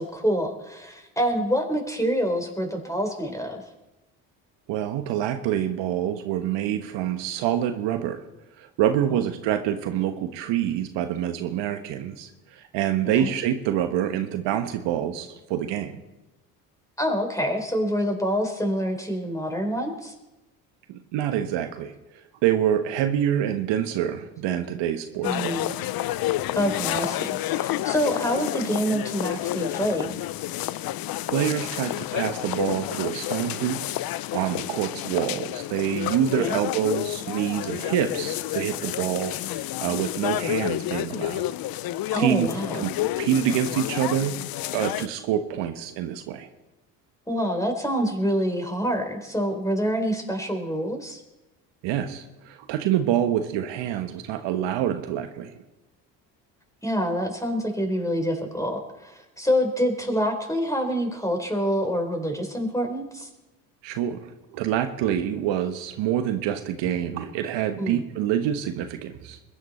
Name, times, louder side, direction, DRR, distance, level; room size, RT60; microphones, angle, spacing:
voice 1, 0.0-3.6 9.1-9.2 13.2-13.3 17.0-20.1 25.2-25.7 26.5-30.1 36.4-36.6 42.1-42.9 47.3-51.2 56.8-63.3 67.8-68.0, equal, 5° left, 3 dB, 4.0 m, -26 dB
voice 2, 4.7-8.2 8.6-15.9 20.9-22.0 22.4-25.6 31.3-41.5 42.2-42.5 42.7-44.4 44.7-46.5 51.8-55.6 63.8-69.4, right 10 dB, 65° right, 7 dB, 1.2 m, -26 dB
sound 1, 25.2-45.1, left 14 dB, 50° left, 0.6 m, -30 dB
21.5 x 10.0 x 4.3 m, 0.99 s
hypercardioid pair, 60°, 46 cm